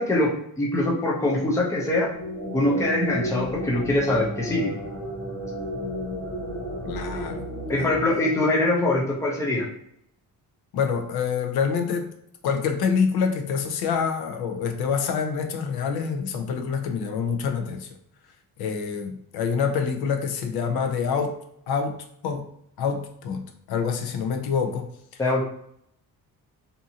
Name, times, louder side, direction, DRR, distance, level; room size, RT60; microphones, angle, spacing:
voice 1, 0.0-2.1 2.5-4.7 7.7-9.7 25.2-25.4, left 1 dB, 10° left, -3 dB, 0.4 m, -23 dB
sound 1, 1.9-9.4, equal, 50° left, 1.1 m, -33 dB
voice 2, 6.8-7.4 7.7-7.9 10.7-12.1 12.4-17.9 18.6-21.3 21.7-22.0 22.2-22.4 22.8-23.4 23.7-24.9, left 6 dB, 90° left, 5 dB, 0.6 m, -26 dB
2.6 x 2.4 x 2.7 m, 0.72 s
cardioid pair, 175°, 37 cm